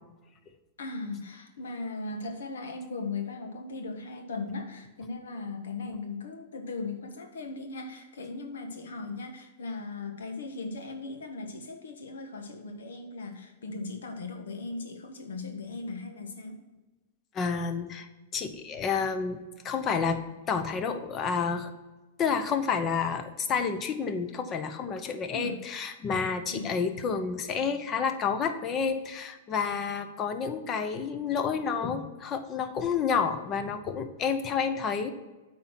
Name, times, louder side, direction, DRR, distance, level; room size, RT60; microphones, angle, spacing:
voice 1, 0.8-16.6 25.3-25.6 26.5-26.7, left 3 dB, 90° left, 5 dB, 1.3 m, -38 dB
voice 2, 17.3-18.1 18.3-19.4 19.6-20.2 20.5-21.7 22.2-35.1, left 6 dB, 30° left, 9 dB, 0.8 m, -29 dB
8.8 x 4.3 x 6.0 m, 1.2 s
hypercardioid pair, 135°, 0 cm